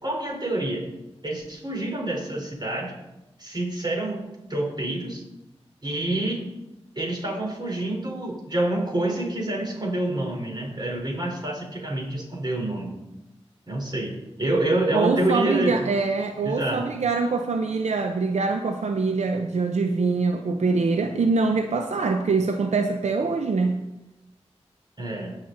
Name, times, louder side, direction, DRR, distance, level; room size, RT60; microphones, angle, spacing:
voice 1, 0.0-0.9 1.2-2.9 3.4-5.2 5.8-6.4 7.0-12.9 13.7-15.9 16.4-16.9 25.0-25.4, right 1 dB, 40° right, -1 dB, 3.7 m, -27 dB
voice 2, 14.9-23.8, right 4 dB, 85° right, 5 dB, 0.6 m, -24 dB
16.5 x 5.8 x 3.8 m, 0.95 s
cardioid pair, 40°, 11 cm